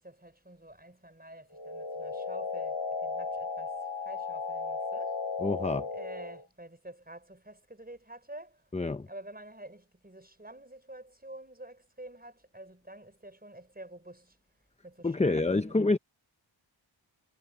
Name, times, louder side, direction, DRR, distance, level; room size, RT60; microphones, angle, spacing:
voice 1, 0.0-5.2 5.9-8.7 9.1-14.4 14.8-16.0, right 1 dB, 20° right, 4.8 m, -49 dB
sound 1, 1.5-6.5, left 4 dB, 65° left, 2.3 m, -35 dB
voice 2, 5.4-5.9 8.7-9.1 15.0-16.0, left 2 dB, 15° left, 0.7 m, -27 dB
wide cardioid pair, 80°, 47 cm